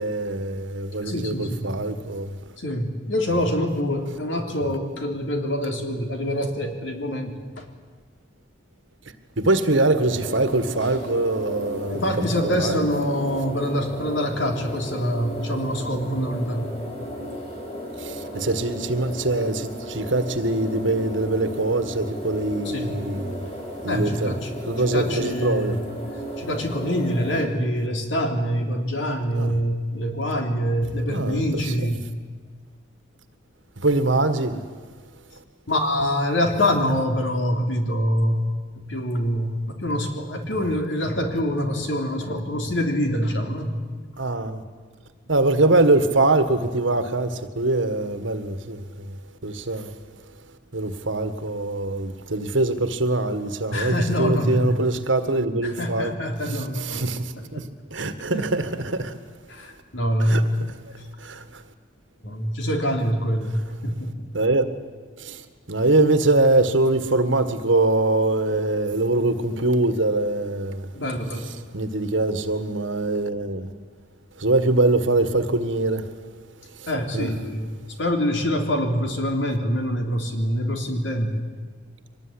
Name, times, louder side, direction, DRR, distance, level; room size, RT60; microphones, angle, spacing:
voice 1, 0.0-2.3 9.4-12.1 12.4-12.8 18.0-23.5 23.8-24.4 24.7-25.8 29.4-29.6 31.1-31.9 33.8-34.6 40.5-40.7 44.2-44.6 45.3-48.8 49.4-49.9 50.7-56.1 56.5-59.1 60.2-60.4 61.2-61.4 64.3-64.7 65.2-65.4 65.7-70.9 71.7-73.7 74.4-76.0 77.1-77.3, right 2 dB, 80° right, 1.7 m, -23 dB
voice 2, 1.0-1.7 2.6-7.6 11.9-16.7 22.6-23.0 23.9-24.5 24.9-25.9 26.4-32.0 35.7-38.4 38.7-43.8 53.7-54.8 55.6-57.1 57.4-57.7 58.3-58.5 59.5-60.6 62.2-64.3 70.9-71.5 76.9-81.4, equal, 75° left, 3.4 m, -25 dB
sound 1, 10.0-27.4, equal, 30° left, 5.1 m, -35 dB
24.0 x 19.5 x 10.0 m
head